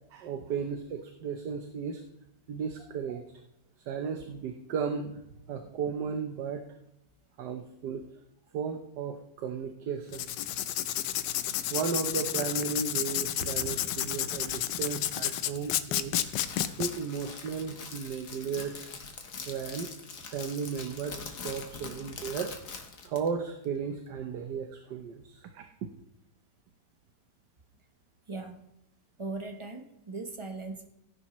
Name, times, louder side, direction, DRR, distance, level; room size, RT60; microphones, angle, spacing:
voice 1, 0.1-2.0 2.5-3.2 3.9-5.2 5.5-6.6 7.4-8.0 8.5-10.6 11.7-16.2 16.7-18.9 19.5-19.9 20.3-22.5 23.0-25.9, right 6 dB, 70° right, 5 dB, 1.4 m, -35 dB
Writing, 10.1-16.9, left 12 dB, 85° left, 1.3 m, -31 dB
Crackle, 16.2-23.3, left 5 dB, 65° left, 1.8 m, -43 dB
voice 2, 28.3-28.7 29.2-30.9, right 3 dB, 25° right, 6 dB, 0.7 m, -39 dB
16.5 x 10.0 x 3.0 m, 0.83 s
omnidirectional pair, 1.9 m